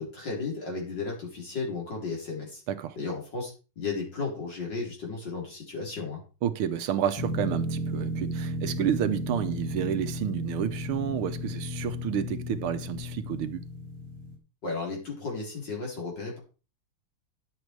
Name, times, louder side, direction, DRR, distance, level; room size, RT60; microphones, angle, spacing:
voice 1, 0.0-2.6 3.0-3.5 3.8-6.2 14.6-16.4, left 4 dB, 55° left, 4.7 m, -34 dB
voice 2, 6.4-13.6, right 9 dB, 75° right, 1.7 m, -30 dB
sound 1, 7.1-14.4, left 1 dB, 10° left, 3.2 m, -34 dB
10.5 x 7.9 x 4.7 m
omnidirectional pair, 2.4 m